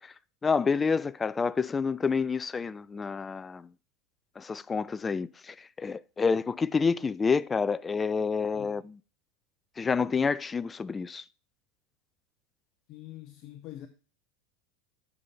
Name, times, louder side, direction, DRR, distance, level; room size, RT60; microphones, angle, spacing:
voice 1, 0.4-3.7 4.4-8.8 9.8-11.2, left 5 dB, 20° left, 0.4 m, -28 dB
voice 2, 8.5-8.9 12.9-13.9, left 13 dB, 50° left, 0.8 m, -45 dB
9.4 x 5.5 x 3.3 m
hypercardioid pair, 105°, 0 cm